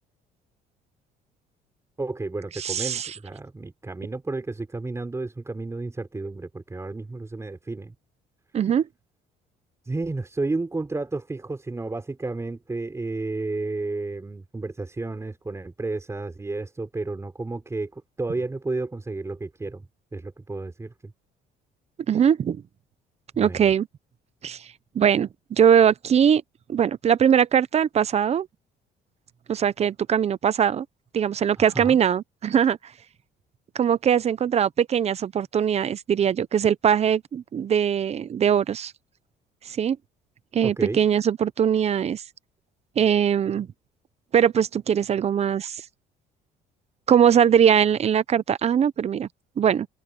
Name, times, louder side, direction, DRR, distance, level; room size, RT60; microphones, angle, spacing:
voice 1, 2.0-7.9 9.8-19.9 20.1-21.1 23.3-23.6 31.6-32.0 40.6-41.0, right 3 dB, 15° right, 5.2 m, -32 dB
voice 2, 2.5-3.1 8.5-8.9 22.1-22.6 23.4-23.9 24.4-24.7 24.9-26.4 26.7-28.5 29.5-30.9 31.1-32.8 33.7-38.9 39.7-40.0 40.5-42.2 43.0-43.7 44.3-45.8 47.1-49.3 49.6-49.9, right 8 dB, 40° right, 0.8 m, -21 dB
open air
cardioid pair, 110°, 17 cm